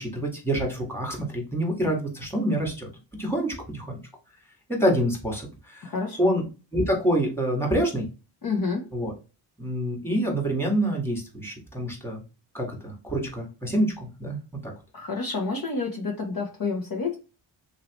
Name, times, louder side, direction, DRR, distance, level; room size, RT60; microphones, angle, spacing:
voice 1, 0.0-2.9 3.2-4.0 4.7-5.8 6.2-6.4 6.7-8.1 8.9-9.1 9.6-12.2 12.5-14.4 14.6-14.7, right 1 dB, 5° left, 0 dB, 1.5 m, -26 dB
voice 2, 5.8-6.3 8.4-8.9 14.9-17.2, left 4 dB, 45° left, 1 dB, 0.9 m, -29 dB
2.9 x 2.8 x 3.0 m, 0.32 s
cardioid pair, 65°, 48 cm